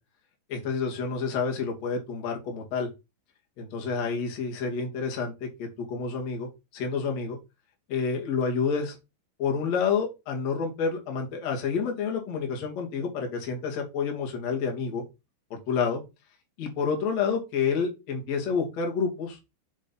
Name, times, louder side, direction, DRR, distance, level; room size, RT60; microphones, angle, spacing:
voice 1, 0.5-2.9 3.6-5.3 5.6-7.4 7.9-9.0 9.4-15.0 15.5-16.0 16.6-19.4, left 5 dB, 45° left, 1 dB, 2.8 m, -29 dB
6.6 x 4.9 x 5.4 m, 0.25 s
omnidirectional pair, 5.2 m